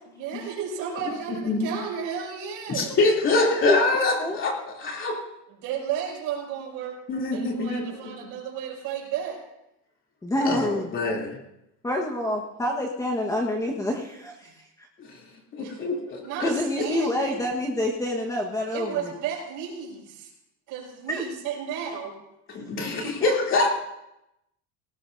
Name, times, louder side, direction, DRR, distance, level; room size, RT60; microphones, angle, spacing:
voice 1, 0.2-3.0 5.5-7.0 7.3-9.4 14.4-14.5 15.6-15.8 16.2-17.4 18.7-20.3 20.7-22.2 23.0-23.1, right 8 dB, 60° right, -1 dB, 6.0 m, -33 dB
voice 2, 1.3-1.7 2.7-5.2 7.1-8.3 10.4-11.4 15.1-15.2 15.5-16.5 22.5-23.7, left 3 dB, 35° left, 0 dB, 2.9 m, -25 dB
voice 3, 3.4-3.8 4.2-4.4 10.2-10.9 11.8-14.5 14.8-14.9 16.4-19.1 21.1-21.2 23.2-23.3, left 1 dB, 10° left, 0 dB, 1.3 m, -27 dB
18.5 x 17.5 x 2.6 m, 0.86 s
cardioid pair, 145°, 35 cm